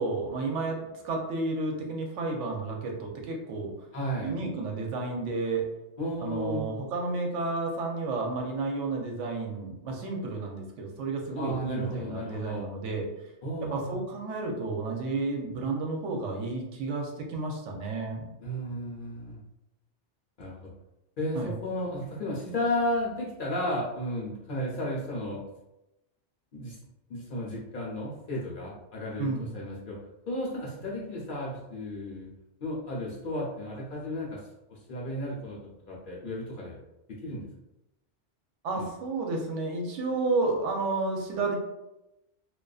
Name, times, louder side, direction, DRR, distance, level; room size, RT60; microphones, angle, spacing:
voice 1, 0.0-3.7 4.2-5.7 6.2-13.1 13.7-18.3 21.3-21.5 29.2-29.5 38.6-41.5, right 3 dB, 80° right, 1 dB, 0.9 m, -31 dB
voice 2, 3.9-4.3 6.0-6.7 11.4-12.7 13.4-14.0 18.4-19.4 20.4-20.6 21.2-25.4 26.5-26.8 27.1-30.0 30.3-32.3 32.6-34.4 34.7-36.8 37.2-37.5 38.7-38.9, left 1 dB, 55° left, -4 dB, 0.6 m, -33 dB
2.5 x 2.2 x 2.3 m, 0.92 s
omnidirectional pair, 1.2 m